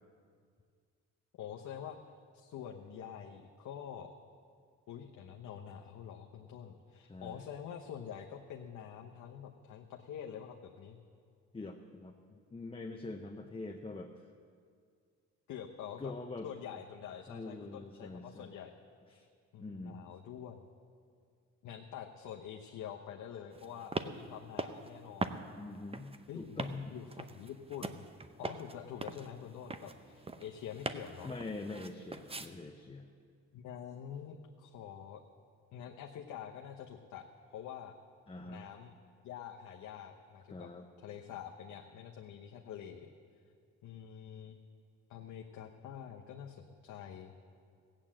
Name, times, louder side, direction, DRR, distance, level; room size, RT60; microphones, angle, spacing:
voice 1, 1.4-4.1 4.9-11.0 15.5-16.1 16.4-18.7 19.5-20.7 21.6-25.4 26.3-26.6 26.9-28.0 28.4-31.3 33.5-35.2 35.7-37.2 37.5-37.9 38.4-38.9 39.2-40.7 41.0-43.1 43.8-44.6 45.1-47.3, left 9 dB, 75° left, 1 dB, 1.0 m, -46 dB
voice 2, 11.5-12.2 12.5-14.2 16.0-16.5 17.3-18.5 19.1-19.3 19.6-20.1 25.6-27.0 31.2-33.1 38.3-38.6 40.5-40.9, left 3 dB, 20° left, 3 dB, 0.8 m, -44 dB
sound 1, 23.5-32.5, right 3 dB, 20° right, 0.7 m, -42 dB
16.0 x 8.8 x 7.5 m, 2.2 s
cardioid pair, 90°, 30 cm